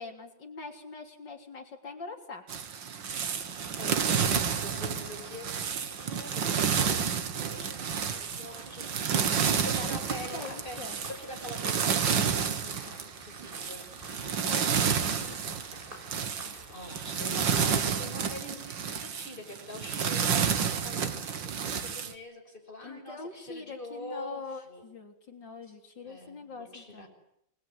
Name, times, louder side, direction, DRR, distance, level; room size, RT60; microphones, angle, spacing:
voice 1, 0.0-2.4 9.3-10.0 10.3-11.0 14.4-15.6 22.8-27.1, left 4 dB, 65° left, 4 dB, 4.1 m, -43 dB
sound 1, 2.5-22.1, right 7 dB, 75° right, 2.3 m, -30 dB
sound 2, 3.0-17.6, right 1 dB, 25° right, 6.9 m, -50 dB
voice 2, 3.8-9.1 9.4-13.8 16.7-24.8 25.7-25.8 26.0-27.1, left 1 dB, 25° left, 3 dB, 6.6 m, -44 dB
28.0 x 20.5 x 9.6 m, 0.75 s
omnidirectional pair, 2.1 m